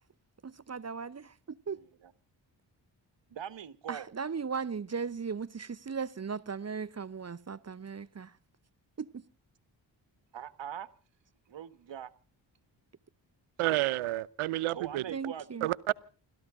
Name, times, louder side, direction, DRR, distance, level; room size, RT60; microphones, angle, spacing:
voice 1, 0.4-1.8 3.9-8.3 9.0-9.2 15.1-15.7, right 5 dB, 30° right, 0.8 m, -37 dB
voice 2, 1.7-2.1 3.3-4.1 10.3-10.9 11.5-12.1 14.7-15.6, right 9 dB, 60° right, 1.4 m, -42 dB
voice 3, 13.6-15.0 15.6-15.9, right 16 dB, 85° right, 0.7 m, -30 dB
29.0 x 13.5 x 3.7 m
supercardioid pair, 40°, 49 cm